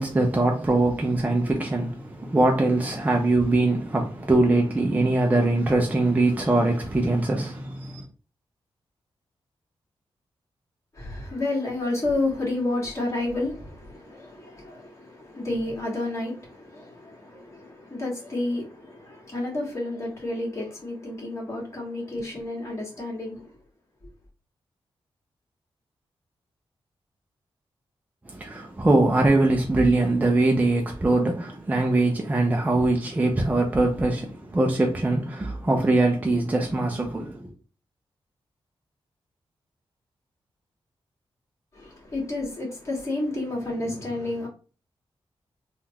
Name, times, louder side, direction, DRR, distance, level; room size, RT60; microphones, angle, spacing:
voice 1, 0.0-8.0 28.3-37.5, right 2 dB, 15° right, 0.5 m, -22 dB
voice 2, 10.9-23.5 41.7-44.5, left 2 dB, 30° left, 1.7 m, -30 dB
3.5 x 2.4 x 2.8 m
wide cardioid pair, 100°, 10 cm